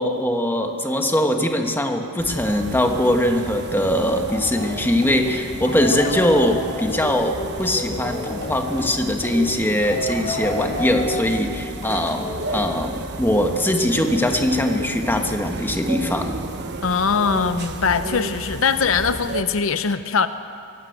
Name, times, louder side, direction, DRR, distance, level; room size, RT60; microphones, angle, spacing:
voice 1, 0.0-16.4, left 1 dB, 10° left, 4 dB, 1.4 m, -21 dB
sound 1, 2.2-19.4, right 2 dB, 50° right, 1.4 m, -33 dB
sound 2, 4.1-13.3, left 1 dB, 30° left, 2.7 m, -31 dB
voice 2, 16.8-20.3, left 5 dB, 65° left, 11 dB, 0.7 m, -21 dB
24.5 x 17.0 x 8.1 m, 2.5 s
head